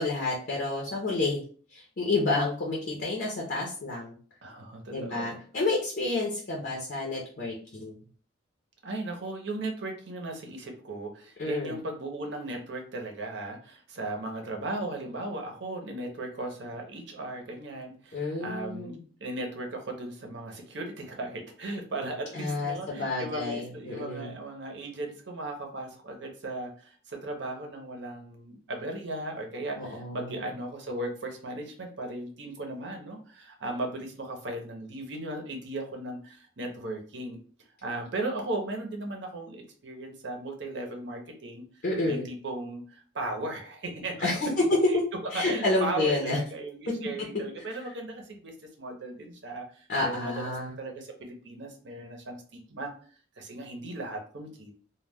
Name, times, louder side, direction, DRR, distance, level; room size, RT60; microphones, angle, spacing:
voice 1, 0.0-1.4 1.7-4.1 4.9-8.0 11.4-11.7 18.1-19.0 22.3-24.3 29.8-30.5 41.8-42.3 44.2-44.8 45.3-46.4 49.9-50.7, left 2 dB, 55° left, -2 dB, 0.6 m, -29 dB
voice 2, 4.4-5.4 8.8-37.4 37.8-44.4 44.9-45.0 45.3-52.9 53.4-54.7, right 2 dB, 60° right, 3 dB, 0.6 m, -37 dB
2.2 x 2.1 x 3.3 m, 0.43 s
head